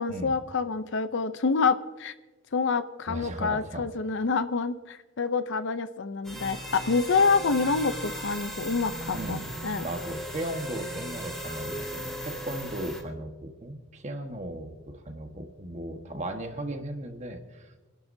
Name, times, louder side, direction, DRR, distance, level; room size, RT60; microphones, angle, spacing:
voice 1, 0.0-2.1 2.5-9.8, left 4 dB, 60° left, 12 dB, 0.6 m, -27 dB
voice 2, 3.1-3.9 9.1-9.5 9.8-17.8, right 1 dB, 35° right, 5 dB, 1.4 m, -37 dB
sound 1, 6.2-13.0, right 1 dB, 5° left, 2.9 m, -37 dB
27.5 x 11.5 x 2.7 m, 1.2 s
head